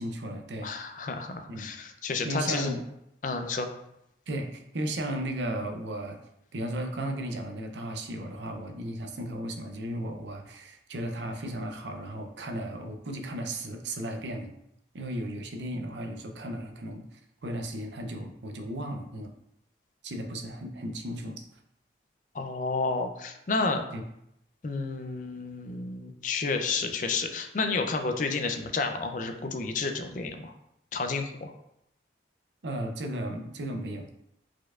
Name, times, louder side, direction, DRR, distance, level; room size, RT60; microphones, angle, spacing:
voice 1, 0.0-0.7 1.5-1.7 2.2-2.8 4.3-6.2 6.5-14.5 14.9-19.3 20.0-21.5 23.9-24.0 32.6-34.1, right 1 dB, 75° right, 5 dB, 0.6 m, -35 dB
voice 2, 0.6-2.8 3.2-3.7 22.3-23.8 24.6-30.5 30.9-31.5, left 4 dB, 45° left, 6 dB, 0.4 m, -31 dB
4.4 x 4.4 x 2.4 m, 0.79 s
head